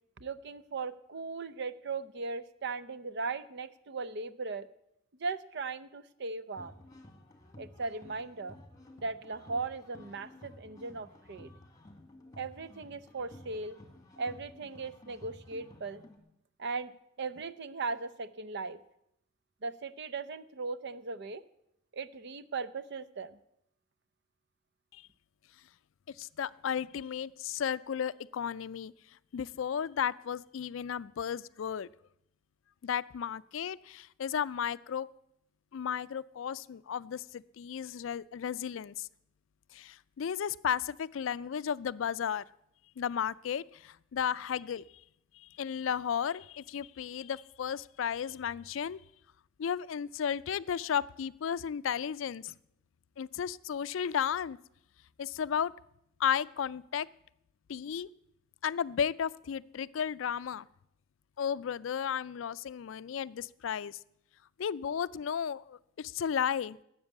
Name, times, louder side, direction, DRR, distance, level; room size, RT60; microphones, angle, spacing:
voice 1, 0.2-4.7 5.2-6.7 7.6-8.6 9.0-11.5 12.4-13.8 14.2-16.0 16.6-16.9 17.2-18.8 19.6-21.4 21.9-23.4, right 4 dB, 60° right, 15 dB, 0.6 m, -38 dB
sound 1, 6.6-16.2, left 1 dB, 20° left, 1.6 m, -54 dB
voice 2, 26.1-28.9 29.3-31.9 32.8-35.1 35.7-39.1 39.7-42.4 43.0-44.8 45.4-49.0 49.6-52.5 53.2-54.6 55.2-55.7 56.2-57.1 57.7-58.1 58.6-60.7 61.4-64.0 64.6-66.8, left 8 dB, 70° left, 18 dB, 0.4 m, -34 dB
12.5 x 8.1 x 8.2 m, 0.78 s
head